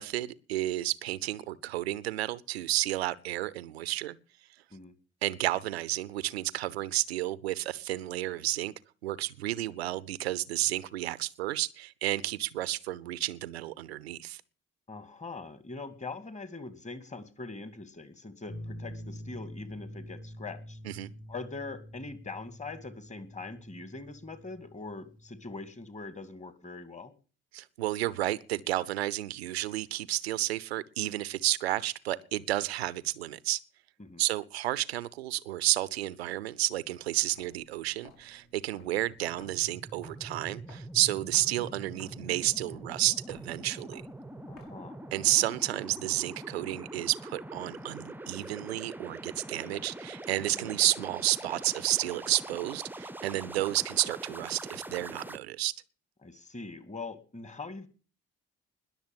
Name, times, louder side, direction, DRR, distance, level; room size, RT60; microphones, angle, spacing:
voice 1, 0.0-4.2 5.2-8.7 9.0-14.4 20.8-21.1 27.5-33.6 34.2-44.0 45.1-55.7, right 15 dB, 75° right, 0.7 m, -31 dB
voice 2, 14.9-20.8 21.3-27.1 34.0-34.2 38.8-39.0 44.5-45.1 50.5-50.8 56.2-57.9, left 3 dB, 20° left, 2.3 m, -42 dB
sound 1, 18.5-25.7, equal, 40° left, 4.9 m, -46 dB
Walk footsteps, 37.3-45.0, left 3 dB, 60° left, 5.9 m, -58 dB
sound 2, 38.9-55.4, right 1 dB, 5° right, 0.8 m, -44 dB
20.5 x 7.2 x 7.3 m
figure-of-eight pair, 45°, 32 cm